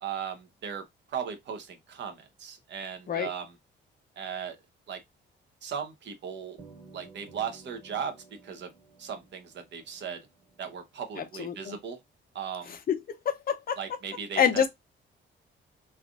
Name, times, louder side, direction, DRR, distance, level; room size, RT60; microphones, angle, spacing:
voice 1, 0.0-0.8 1.1-3.5 4.2-4.6 4.9-5.0 5.6-6.6 6.9-8.2 8.4-8.7 9.0-10.2 10.6-12.0 12.3-12.8 13.8-14.6, right 7 dB, 65° right, 0.8 m, -37 dB
sound 1, 6.6-11.2, right 4 dB, 80° right, 1.7 m, -54 dB
voice 2, 11.2-11.8 12.7-13.0 13.3-13.8 14.4-14.7, left 8 dB, 45° left, 0.6 m, -27 dB
3.3 x 2.5 x 2.3 m
cardioid pair, 90°, 20 cm